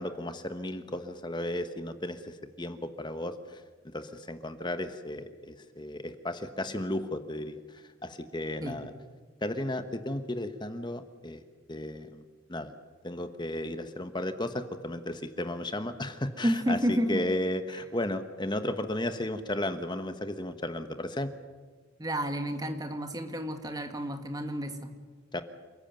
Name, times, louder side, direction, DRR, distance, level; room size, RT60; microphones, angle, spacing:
voice 1, 0.0-8.9 9.4-11.4 11.7-12.2 12.5-12.7 13.0-21.3 25.3-25.4, left 1 dB, 20° left, 9 dB, 1.2 m, -34 dB
voice 2, 16.4-17.3 22.0-24.9, equal, 20° right, 6 dB, 1.9 m, -30 dB
28.5 x 14.5 x 9.1 m, 1.4 s
head